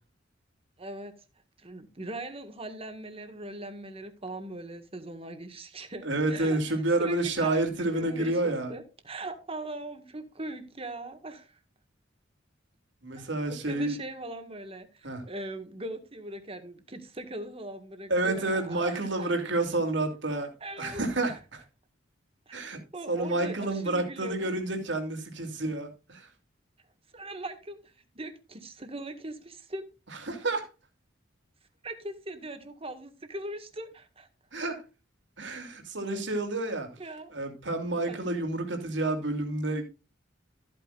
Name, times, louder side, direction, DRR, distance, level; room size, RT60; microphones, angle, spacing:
voice 1, 0.8-1.2 1.6-11.6 13.1-19.3 20.6-21.4 22.5-24.5 27.1-29.9 31.8-34.3 37.0-37.3 38.1-38.2, right 2 dB, 30° right, 1.8 m, -40 dB
voice 2, 6.0-8.7 13.0-14.0 15.0-15.2 18.1-20.5 20.8-21.3 22.5-22.8 23.1-26.3 30.3-30.7 34.5-34.8 35.4-36.9 37.3-39.8, right 2 dB, 70° right, 3.0 m, -29 dB
14.0 x 9.0 x 2.5 m
head